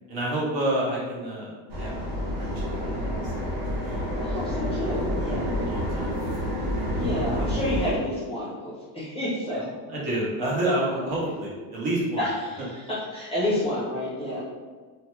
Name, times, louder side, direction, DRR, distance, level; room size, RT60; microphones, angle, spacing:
voice 1, 0.1-3.3 4.3-4.9 5.4-6.5 9.9-12.2, right 1 dB, 45° right, -5 dB, 1.0 m, -30 dB
sound 1, 1.7-7.9, equal, 80° right, 1.0 m, -28 dB
voice 2, 3.8-5.5 7.0-9.7 10.9-11.1 12.2-14.4, left 1 dB, 10° left, -10 dB, 0.6 m, -30 dB
2.6 x 2.2 x 3.1 m, 1.4 s
cardioid pair, 155°, 50 cm